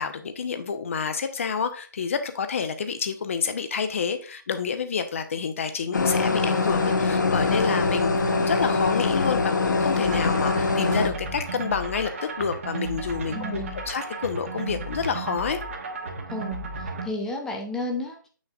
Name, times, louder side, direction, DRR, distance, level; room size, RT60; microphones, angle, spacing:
voice 1, 0.0-12.1 12.4-15.6, left 6 dB, 40° left, 9 dB, 0.8 m, -29 dB
sound 1, 5.9-11.1, left 3 dB, 60° left, 1.1 m, -23 dB
sound 2, 10.0-17.1, right 3 dB, 40° right, 1.0 m, -34 dB
voice 2, 13.3-13.8 16.3-18.3, left 2 dB, 5° left, 2 dB, 0.5 m, -33 dB
6.9 x 6.4 x 2.5 m, 0.39 s
figure-of-eight pair, 150°, 11 cm